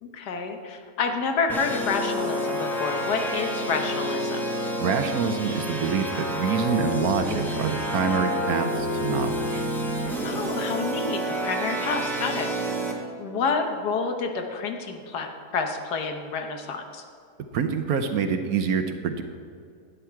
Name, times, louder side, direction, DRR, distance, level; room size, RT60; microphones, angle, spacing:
voice 1, 0.0-4.5 10.2-12.8 13.2-17.0, left 5 dB, 70° left, 5 dB, 1.5 m, -29 dB
sound 1, 1.5-12.9, equal, ahead, 1.1 m, -29 dB
voice 2, 4.8-9.6 17.5-19.2, right 6 dB, 65° right, 7 dB, 1.1 m, -26 dB
12.0 x 9.2 x 4.6 m, 2.4 s
omnidirectional pair, 1.8 m